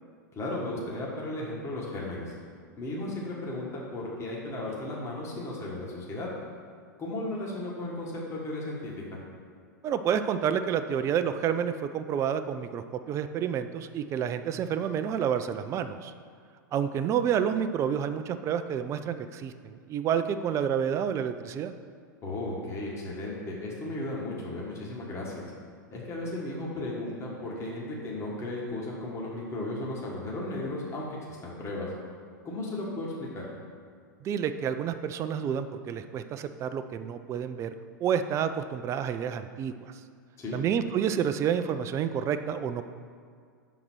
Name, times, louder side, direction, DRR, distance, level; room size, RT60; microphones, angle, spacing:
voice 1, 0.3-2.3 2.8-6.3 7.0-9.2 22.2-25.5 25.9-31.9 32.4-33.5 40.4-40.6, left 2 dB, 25° left, -4 dB, 1.5 m, -35 dB
voice 2, 9.8-16.1 16.7-21.7 34.2-37.7 38.0-39.9 40.5-42.8, right 8 dB, 30° right, 10 dB, 0.3 m, -29 dB
5.9 x 4.0 x 6.1 m, 2.1 s
hypercardioid pair, 100°, 10 cm